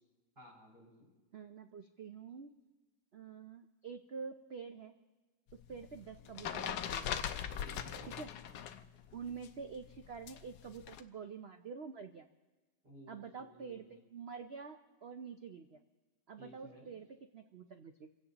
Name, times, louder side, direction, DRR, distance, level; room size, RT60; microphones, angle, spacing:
voice 1, 0.4-1.1 7.6-8.1 12.8-13.9 16.4-16.9, equal, 25° right, -5 dB, 5.8 m, -56 dB
voice 2, 1.3-2.5 3.1-4.9 5.7-7.1 8.2-8.3 9.1-12.3 13.1-15.8 16.3-17.1 17.3-18.1, right 6 dB, 75° right, 7 dB, 0.5 m, -47 dB
sound 1, 5.5-8.9 9.1-11.0, left 9 dB, 70° left, 1.1 m, -41 dB
28.0 x 16.5 x 2.9 m, 1.2 s
omnidirectional pair, 1.9 m